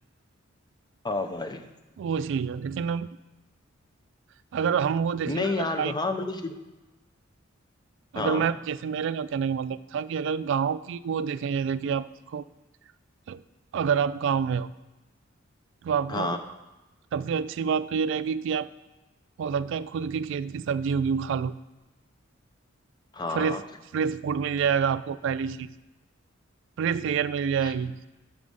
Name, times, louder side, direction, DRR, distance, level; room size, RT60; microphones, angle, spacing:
voice 1, 1.0-1.6 5.3-6.5 8.1-8.5 16.1-16.4 23.1-23.6 27.6-27.7, left 3 dB, 20° left, 5 dB, 0.6 m, -29 dB
voice 2, 2.0-3.2 4.5-5.9 8.1-12.4 13.3-13.4 13.7-14.7 15.8-16.4 17.1-18.7 19.4-21.5 23.3-23.6 23.9-25.7 26.8-28.0, right 6 dB, 65° right, 15 dB, 0.3 m, -27 dB
7.2 x 4.9 x 5.4 m, 1.1 s
head